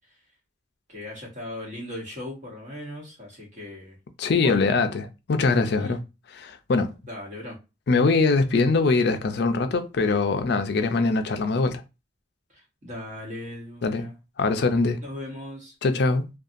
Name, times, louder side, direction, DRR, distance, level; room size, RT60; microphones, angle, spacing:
voice 1, 0.9-4.0 4.4-4.7 5.8-6.0 7.1-7.6 12.5-14.1 15.0-15.7, left 1 dB, 40° right, 1.1 m, -38 dB
voice 2, 4.2-6.0 6.4-6.9 7.9-11.8 13.8-14.1 14.4-15.0 15.8-16.2, left 3 dB, 60° left, 0.4 m, -22 dB
2.7 x 2.2 x 2.5 m
head